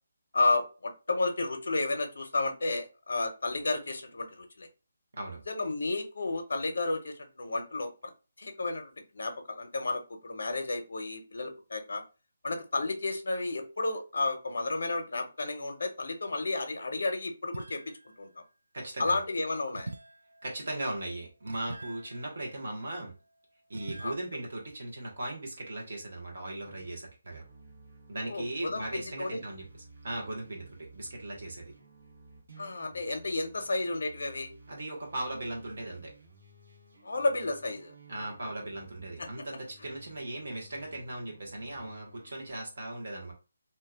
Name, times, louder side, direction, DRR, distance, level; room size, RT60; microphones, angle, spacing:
voice 1, 0.3-4.7 5.5-7.9 8.4-12.0 12.4-17.8 18.2-18.3 19.0-19.9 24.0-24.1 28.2-29.4 32.6-34.5 37.0-37.9 39.2-39.4, left 2 dB, 65° left, 6 dB, 0.7 m, -32 dB
sound 1, 17.5-18.2 19.7-23.1 23.7-24.1, right 2 dB, 80° right, 0.3 m, -45 dB
voice 2, 18.7-19.2 20.4-23.1 23.7-27.4 28.1-29.6 30.0-31.7 34.7-36.1 38.1-43.3, right 1 dB, 50° right, 0 dB, 1.1 m, -38 dB
sound 2, 26.6-27.0 27.3-42.5, right 3 dB, 65° right, 1.3 m, -55 dB
2.8 x 2.3 x 3.4 m, 0.31 s
hypercardioid pair, 180°, 0 cm